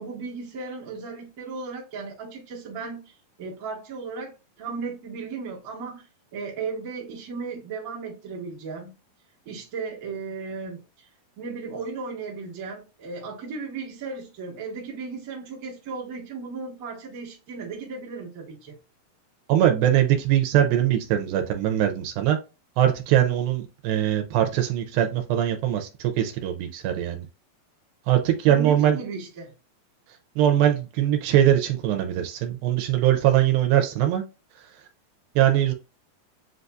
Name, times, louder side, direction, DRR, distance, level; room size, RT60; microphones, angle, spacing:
voice 1, 0.0-3.0 3.4-6.0 6.3-8.9 9.4-11.1 11.4-18.8 28.4-29.5, right 4 dB, 50° right, 1.0 m, -35 dB
voice 2, 19.5-22.4 22.8-27.3 28.1-29.0 30.4-34.2 35.4-35.7, right 11 dB, 80° right, 2.3 m, -21 dB
7.5 x 2.6 x 2.3 m
omnidirectional pair, 4.4 m